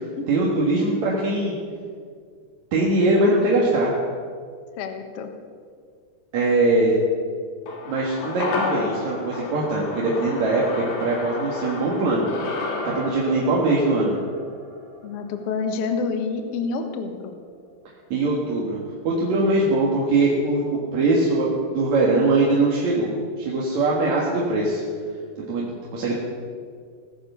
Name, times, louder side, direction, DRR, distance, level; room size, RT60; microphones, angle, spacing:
voice 1, 0.3-1.5 2.7-3.9 6.3-7.0 7.9-10.6 11.0-12.3 12.9-14.2 18.1-18.8 19.0-24.8 25.4-26.2, right 2 dB, 50° right, -4 dB, 2.7 m, -21 dB
voice 2, 4.8-5.3 15.0-17.4, left 4 dB, 75° left, 6 dB, 1.3 m, -28 dB
sound 1, 7.7-16.2 16.4-16.5, left 3 dB, 45° left, 2.3 m, -32 dB
18.5 x 10.0 x 6.9 m, 2.1 s
omnidirectional pair, 4.7 m